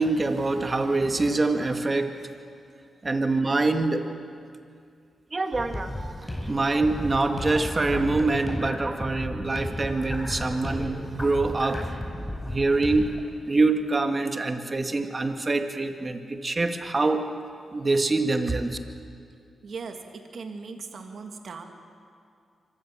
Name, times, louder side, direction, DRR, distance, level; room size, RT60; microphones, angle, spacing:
voice 1, 0.0-2.1 3.0-4.0 5.3-11.8 12.5-13.1 13.5-17.2 17.7-18.8, right 3 dB, 35° right, 6 dB, 2.0 m, -25 dB
sound 1, 5.5-13.2, left 1 dB, 20° left, 4.4 m, -34 dB
voice 2, 19.6-21.6, right 4 dB, 65° right, 5 dB, 2.2 m, -39 dB
25.0 x 15.0 x 7.5 m, 2.4 s
supercardioid pair, 50°, 0 cm